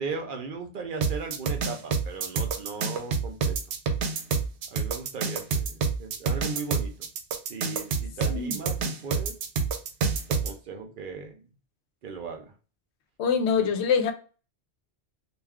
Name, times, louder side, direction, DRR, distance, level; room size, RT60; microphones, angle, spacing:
voice 1, 0.0-3.6 4.7-7.1 7.5-9.4 10.3-11.4 12.0-12.5, right 4 dB, 60° right, 0.7 m, -37 dB
sound 1, 1.0-10.5, right 5 dB, 85° right, 0.8 m, -27 dB
voice 2, 13.2-14.1, left 6 dB, 90° left, 0.8 m, -24 dB
2.4 x 2.2 x 3.4 m
omnidirectional pair, 1.1 m